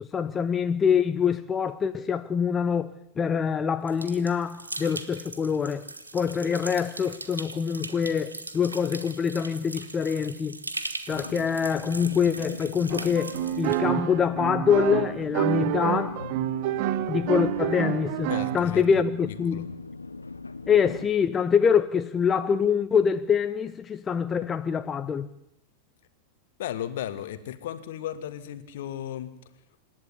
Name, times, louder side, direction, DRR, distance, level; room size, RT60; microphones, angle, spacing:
voice 1, 0.0-5.9 6.1-10.6 11.1-16.3 17.1-19.7 20.7-25.3, left 7 dB, 20° left, 0.8 m, -25 dB
sound 1, 3.9-13.8, right 2 dB, 80° right, 1.5 m, -39 dB
sound 2, 11.1-21.1, left 3 dB, 80° left, 1.0 m, -41 dB
sound 3, 12.9-18.6, right 13 dB, 50° right, 0.9 m, -28 dB
voice 2, 18.3-18.8 19.3-19.6 26.6-29.3, left 11 dB, 55° left, 1.8 m, -35 dB
26.5 x 11.5 x 9.9 m
figure-of-eight pair, 90°, 0 cm